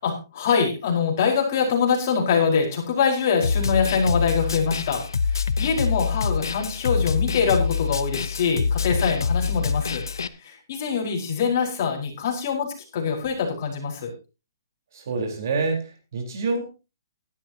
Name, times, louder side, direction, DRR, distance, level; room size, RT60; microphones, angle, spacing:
voice 1, 0.0-10.0 10.4-14.1, left 6 dB, 45° left, 1 dB, 4.7 m, -24 dB
Snare drum, 3.4-10.3, left 5 dB, 85° left, 0.8 m, -25 dB
voice 2, 14.9-16.6, right 4 dB, 55° right, 3 dB, 4.2 m, -27 dB
16.5 x 12.0 x 2.9 m, 0.30 s
hypercardioid pair, 160°, 2 cm